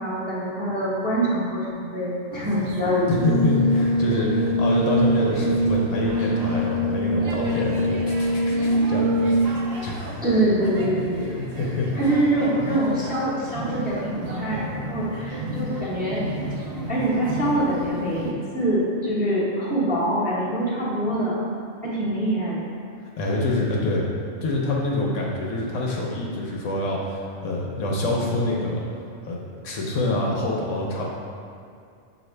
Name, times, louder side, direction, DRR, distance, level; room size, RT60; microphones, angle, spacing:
voice 1, 0.0-3.2 10.2-11.4 11.9-16.2 16.9-21.5 21.8-22.6, right 1 dB, 10° right, -9 dB, 0.9 m, -24 dB
sound 1, 2.3-18.3, right 1 dB, 60° right, 0.6 m, -35 dB
voice 2, 3.1-9.1 9.4-10.2 11.3-11.9 23.2-24.1 24.4-28.8 29.2-29.4 29.6-31.1, left 2 dB, 70° left, -2 dB, 1.0 m, -26 dB
Brass instrument, 3.2-9.6, right 1 dB, 85° right, 1.1 m, -23 dB
6.4 x 2.6 x 3.2 m, 2.4 s
omnidirectional pair, 1.4 m